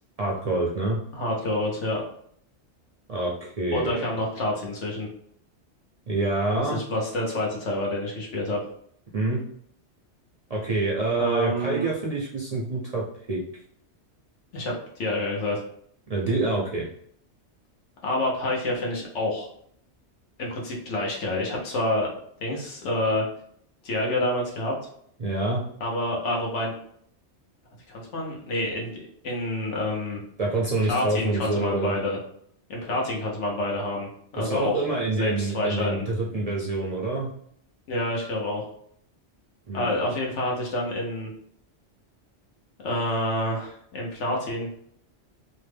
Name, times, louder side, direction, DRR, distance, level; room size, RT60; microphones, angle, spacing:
voice 1, 0.2-1.0 3.1-4.1 6.1-6.8 9.1-9.4 10.5-13.4 16.1-16.9 25.2-25.6 30.4-31.9 34.4-37.3 39.7-39.9, right 2 dB, 50° right, -4 dB, 0.4 m, -26 dB
voice 2, 1.1-2.0 3.7-5.1 6.6-8.6 11.2-11.9 14.5-15.6 18.0-19.5 20.4-22.1 22.4-23.3 23.8-24.8 25.8-26.8 27.9-29.0 29.2-30.2 30.9-32.2 32.7-34.8 35.2-36.0 37.9-38.7 39.7-41.3 42.8-44.7, left 1 dB, 80° left, -1 dB, 1.1 m, -28 dB
3.0 x 2.1 x 3.3 m, 0.66 s
omnidirectional pair, 1.2 m